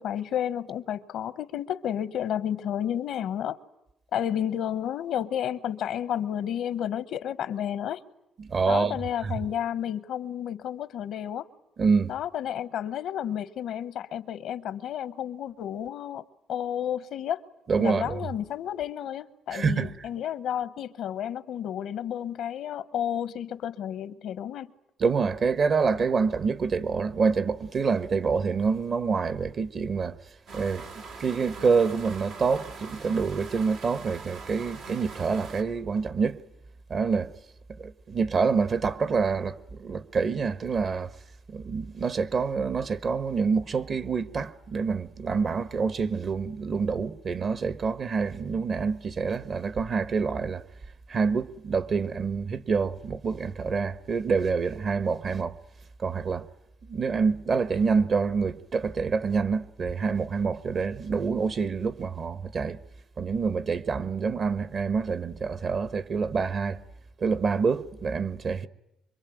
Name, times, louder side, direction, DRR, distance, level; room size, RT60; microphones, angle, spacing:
voice 1, 0.0-3.6 4.1-8.0 8.6-11.5 12.1-16.2 16.5-17.4 17.8-24.7, left 10 dB, 80° left, 1.0 m, -31 dB
voice 2, 8.4-9.0 9.2-9.3 11.8-12.1 17.7-18.2 19.5-19.9 25.0-30.2 30.5-30.8 31.2-36.4 36.9-37.3 37.8-41.1 41.5-50.6 51.1-55.6 56.0-56.5 56.9-62.8 63.2-66.8 67.2-68.7, right 5 dB, 50° right, 1.2 m, -27 dB
sound 1, 30.5-35.6, right 4 dB, 90° right, 2.8 m, -43 dB
25.5 x 23.5 x 9.2 m
cardioid pair, 90°, 0 cm